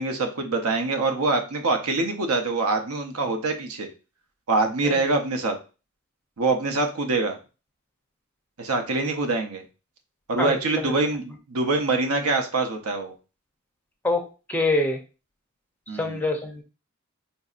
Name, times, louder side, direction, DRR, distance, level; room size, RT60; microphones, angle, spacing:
voice 1, 0.0-3.9 4.5-5.6 6.4-7.4 8.6-9.6 10.3-13.1 15.9-16.3, right 3 dB, 80° right, 5 dB, 0.7 m, -24 dB
voice 2, 10.4-10.8 14.0-14.2 14.5-15.0 16.0-16.6, left 2 dB, 10° left, 3 dB, 0.5 m, -25 dB
4.1 x 2.6 x 2.4 m, 0.32 s
head